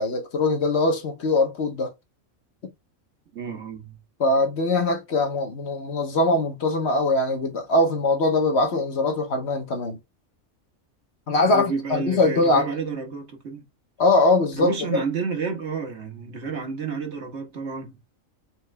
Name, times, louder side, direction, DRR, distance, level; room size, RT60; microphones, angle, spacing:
voice 1, 0.0-1.9 4.2-10.0 11.3-12.7 14.0-15.0, left 2 dB, 55° left, 1.2 m, -22 dB
voice 2, 3.3-4.0 11.5-13.6 14.6-18.0, right 5 dB, 60° right, 1.5 m, -30 dB
4.5 x 3.1 x 3.2 m
omnidirectional pair, 1.4 m